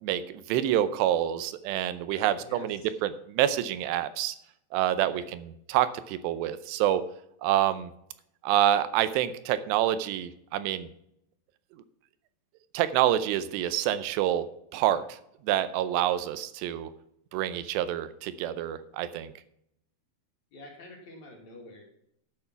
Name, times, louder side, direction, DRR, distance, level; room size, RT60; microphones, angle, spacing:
voice 1, 0.5-4.4 4.7-7.0 7.4-7.9 8.4-10.9 12.7-14.5 14.7-15.2 15.4-16.9 17.3-19.3, right 12 dB, 85° right, 13 dB, 2.8 m, -27 dB
voice 2, 2.1-2.8 5.0-5.3 20.5-21.8, left 2 dB, 50° left, 0 dB, 3.0 m, -48 dB
12.0 x 6.7 x 5.8 m, 0.75 s
omnidirectional pair, 4.9 m